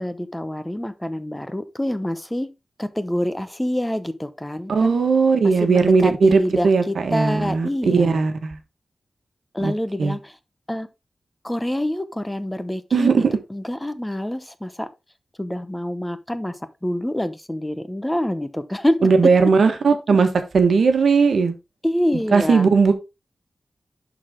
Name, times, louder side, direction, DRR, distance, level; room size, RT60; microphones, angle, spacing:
voice 1, 0.0-2.5 2.8-5.0 5.6-8.3 9.5-10.4 10.7-10.9 11.4-14.9 15.4-16.6 16.8-19.1 21.8-22.7, left 1 dB, 10° left, 0.9 m, -26 dB
voice 2, 4.7-8.6 9.6-9.7 10.0-10.2 12.9-13.3 19.0-21.5 22.3-22.9, right 4 dB, 80° right, 1.3 m, -18 dB
11.5 x 4.1 x 3.7 m
wide cardioid pair, 85°, 0 cm